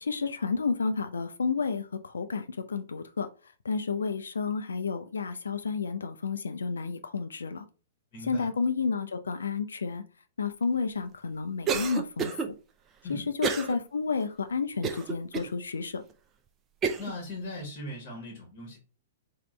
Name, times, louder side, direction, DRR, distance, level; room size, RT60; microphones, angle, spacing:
voice 1, 0.0-3.3 3.6-7.6 8.2-10.0 10.4-12.3 13.1-16.0, left 5 dB, 70° left, 0.3 m, -31 dB
voice 2, 8.1-8.5 13.0-13.3 17.0-18.8, left 1 dB, 35° left, 1.0 m, -39 dB
Cough, 11.7-12.5 13.4-13.8 14.2-14.3 14.8-15.5 16.1-16.2 16.8-17.1, right 6 dB, 20° right, 0.4 m, -29 dB
3.5 x 2.2 x 3.2 m
figure-of-eight pair, 110°, 0 cm